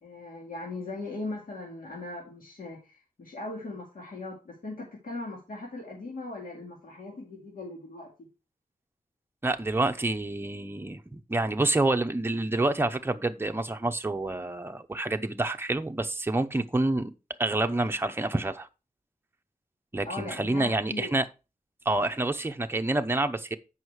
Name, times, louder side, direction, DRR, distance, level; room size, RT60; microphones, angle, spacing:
voice 1, 0.0-8.1 20.0-21.1, left 2 dB, 85° left, 2.4 m, -39 dB
voice 2, 9.4-17.1 17.4-18.7 19.9-21.3 21.9-23.6, right 2 dB, 15° right, 0.7 m, -28 dB
8.1 x 5.7 x 4.6 m
wide cardioid pair, 120°, 14 cm